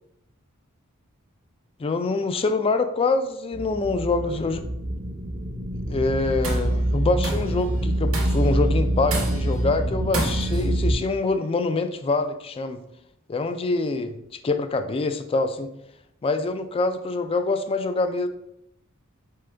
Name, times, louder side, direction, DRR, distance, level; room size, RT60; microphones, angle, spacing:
voice 1, 1.8-4.6 5.9-12.8 13.3-14.2 14.4-15.7 16.2-18.3, left 3 dB, 25° left, 8 dB, 0.3 m, -25 dB
sound 1, 3.5-10.9, right 1 dB, 35° right, 0.6 m, -25 dB
Tools, 6.2-6.8 7.2-7.6 8.1-8.6 9.1-9.6 10.1-10.7, right 2 dB, 70° right, 0.9 m, -30 dB
4.1 x 3.8 x 3.3 m, 0.78 s
head